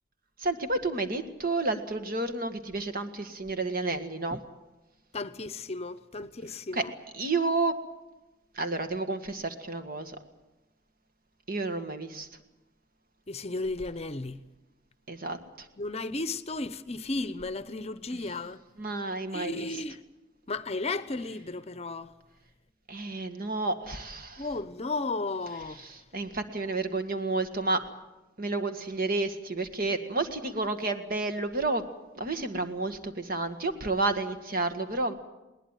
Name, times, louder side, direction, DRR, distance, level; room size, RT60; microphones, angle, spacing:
voice 1, 0.4-4.4 6.7-6.8 7.1-7.8 8.5-10.2 11.5-12.3 15.1-15.7 18.1-18.2 18.8-19.7 22.9-24.5 25.7-27.8 28.4-31.8 32.2-35.1, right 3 dB, 50° right, 1.8 m, -31 dB
voice 2, 5.1-6.9 13.3-14.4 15.8-18.6 19.3-20.0 20.5-22.1 24.4-25.8, left 3 dB, 35° left, 0.8 m, -34 dB
21.0 x 19.5 x 9.2 m
head